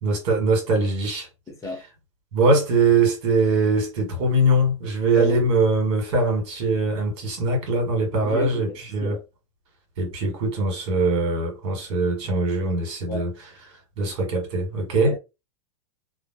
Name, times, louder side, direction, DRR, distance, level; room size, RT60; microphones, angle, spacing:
voice 1, 0.0-1.3 2.3-9.2 10.0-13.3 14.0-15.2, right 2 dB, 55° right, 1.7 m, -22 dB
voice 2, 1.5-1.8 5.2-5.4 8.2-9.2 13.1-13.3 15.1-15.2, left 2 dB, 20° left, 0.8 m, -32 dB
2.9 x 2.4 x 2.7 m
hypercardioid pair, 110°, 16 cm